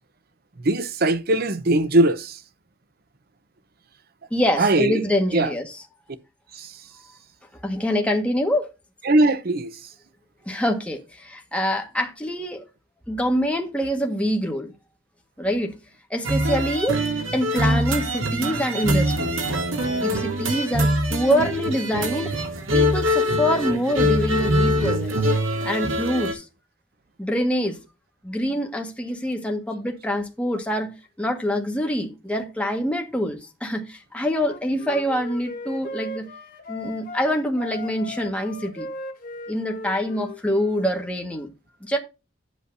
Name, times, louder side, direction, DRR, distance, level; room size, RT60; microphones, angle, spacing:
voice 1, 0.6-2.4 4.6-5.5 6.5-6.7 9.0-9.7, right 2 dB, 50° right, 0.7 m, -20 dB
voice 2, 4.3-5.7 7.6-8.7 10.5-12.6 13.1-14.7 15.4-15.7 16.1-17.0 17.3-19.4 20.0-22.3 22.7-25.2 25.6-26.4 27.2-27.8 28.2-30.9 31.2-36.3 36.7-38.9 39.5-41.5 41.8-42.0, equal, 5° left, 1.5 m, -25 dB
sound 1, 16.2-26.3, equal, 80° right, 2.6 m, -23 dB
Wind instrument woodwind instrument, 34.3-37.3 37.6-40.9, left 2 dB, 45° left, 1.6 m, -37 dB
9.7 x 8.1 x 2.6 m
head